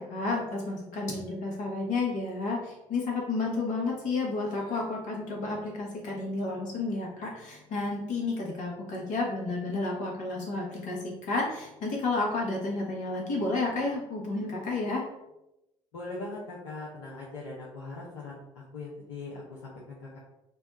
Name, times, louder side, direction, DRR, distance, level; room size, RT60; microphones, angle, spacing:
voice 1, 0.0-15.0, left 3 dB, 55° left, -1 dB, 1.2 m, -31 dB
voice 2, 15.9-20.2, left 2 dB, 70° left, -5 dB, 0.7 m, -41 dB
3.4 x 2.2 x 4.1 m, 0.90 s
figure-of-eight pair, 50°, 16 cm